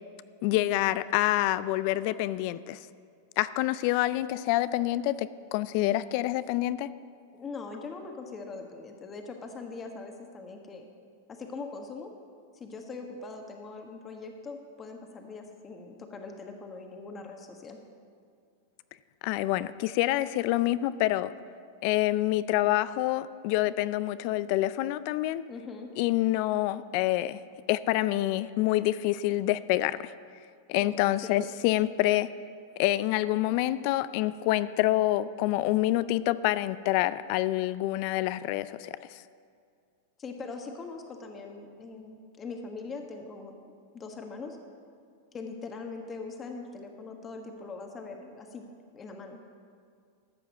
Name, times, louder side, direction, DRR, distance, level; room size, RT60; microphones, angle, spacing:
voice 1, 0.4-2.8 3.4-6.9 19.2-21.3 21.8-25.4 26.0-27.4 27.7-30.1 30.7-32.3 32.8-39.2, left 15 dB, 55° left, 16 dB, 0.4 m, -27 dB
voice 2, 7.3-10.9 11.3-12.1 12.5-17.8 25.5-25.9 30.8-31.5 40.2-43.5 43.9-44.6 45.3-48.6 48.9-49.4, left 4 dB, 25° left, 3 dB, 1.3 m, -41 dB
13.5 x 5.7 x 8.1 m, 2.3 s
hypercardioid pair, 105°, 0 cm